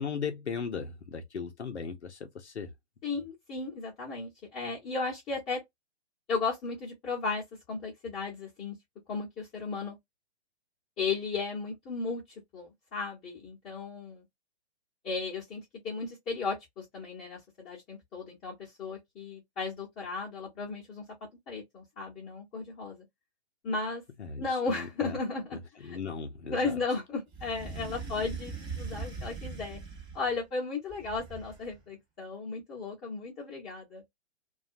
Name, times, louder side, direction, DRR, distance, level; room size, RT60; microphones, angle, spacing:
voice 1, 0.0-2.7 24.2-25.2 25.8-26.8, left 6 dB, 90° left, 0.6 m, -37 dB
voice 2, 3.0-5.6 6.3-8.8 9.1-10.0 11.0-14.2 15.0-21.0 21.5-23.0 23.6-24.0 24.4-26.0 26.5-29.8 30.1-34.0, left 4 dB, 20° left, 0.8 m, -35 dB
sound 1, 27.3-30.4 30.9-31.8, right 4 dB, 15° right, 0.6 m, -40 dB
2.4 x 2.1 x 2.6 m
figure-of-eight pair, 125°, 33 cm